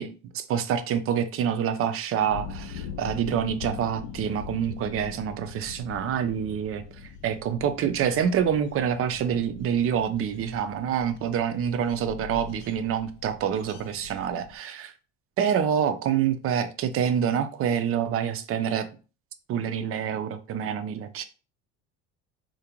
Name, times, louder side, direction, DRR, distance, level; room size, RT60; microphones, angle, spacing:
voice 1, 0.0-6.8 7.2-14.9 15.4-18.9 19.5-21.2, right 8 dB, 40° right, 0.4 m, -27 dB
sound 1, 2.3-14.6, left 6 dB, 80° left, 0.5 m, -42 dB
2.5 x 2.1 x 2.9 m
supercardioid pair, 85°, 34 cm